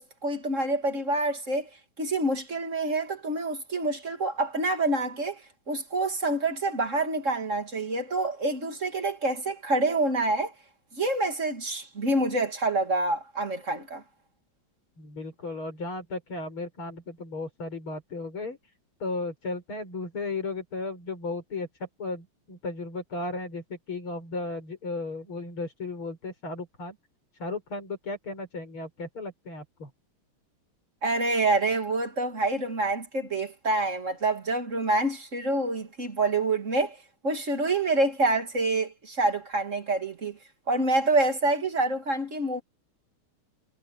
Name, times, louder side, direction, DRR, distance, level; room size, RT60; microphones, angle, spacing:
voice 1, 0.0-1.7 2.0-10.5 10.9-14.0 31.0-37.0 37.2-40.4 40.7-42.6, right 2 dB, 35° right, 2.5 m, -27 dB
voice 2, 15.0-18.6 19.0-21.7 22.0-27.0 27.4-29.9, left 3 dB, 80° left, 7.1 m, -35 dB
omnidirectional pair, 2.3 m